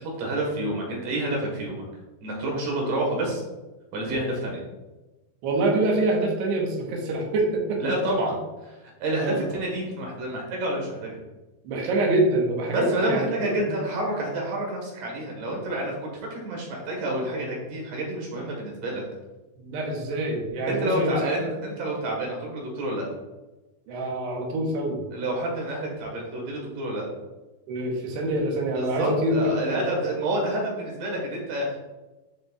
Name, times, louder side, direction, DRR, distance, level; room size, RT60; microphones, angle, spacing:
voice 1, 0.0-1.8 2.2-3.4 3.9-4.6 7.8-8.3 8.6-11.2 12.7-19.0 20.7-23.1 25.1-27.1 28.7-31.8, right 1 dB, 60° right, -1 dB, 3.0 m, -29 dB
voice 2, 5.4-7.8 8.1-8.2 9.2-9.4 11.6-13.3 13.7-13.8 19.6-21.3 23.9-25.0 27.7-29.8, right 2 dB, 90° right, 0 dB, 3.4 m, -25 dB
10.5 x 5.4 x 2.5 m, 1.1 s
omnidirectional pair, 4.7 m